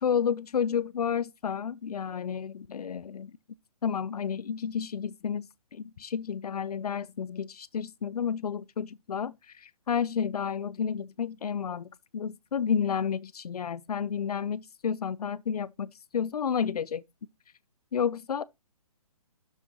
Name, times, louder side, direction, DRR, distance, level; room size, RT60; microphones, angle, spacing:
voice 1, 0.0-3.3 3.8-17.0 17.9-18.5, left 7 dB, 85° left, 0.6 m, -31 dB
9.9 x 6.4 x 2.9 m
hypercardioid pair, 170°, 19 cm